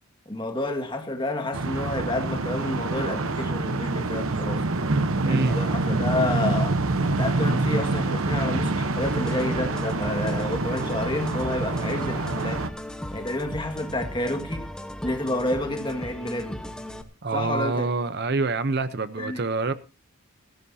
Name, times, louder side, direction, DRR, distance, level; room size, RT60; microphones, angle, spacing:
voice 1, 0.3-4.6 5.2-6.8 7.1-12.6 13.1-14.7 15.0-16.6 17.3-17.9 19.2-19.4, left 1 dB, 20° left, 1.9 m, -29 dB
sound 1, 1.5-12.7, right 2 dB, 75° right, 1.0 m, -26 dB
voice 2, 5.2-5.6 17.2-19.7, right 3 dB, 50° right, 0.7 m, -26 dB
sound 2, 9.0-17.0, left 1 dB, 5° left, 1.1 m, -37 dB
20.0 x 14.0 x 2.8 m
head